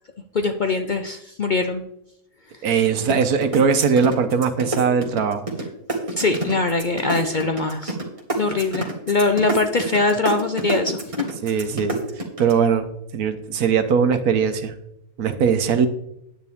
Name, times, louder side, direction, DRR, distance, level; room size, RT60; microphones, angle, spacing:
voice 1, 0.3-1.8 6.2-8.0 8.4-11.3, left 3 dB, 60° left, 7 dB, 0.5 m, -22 dB
voice 2, 2.6-5.5 11.4-12.0 12.4-12.9 13.1-14.7 15.2-15.9, right 6 dB, 80° right, 9 dB, 1.3 m, -20 dB
sound 1, 3.1-5.6 5.9-12.5, right 2 dB, 20° right, 1.8 m, -27 dB
9.9 x 9.4 x 3.5 m, 0.79 s
omnidirectional pair, 1.6 m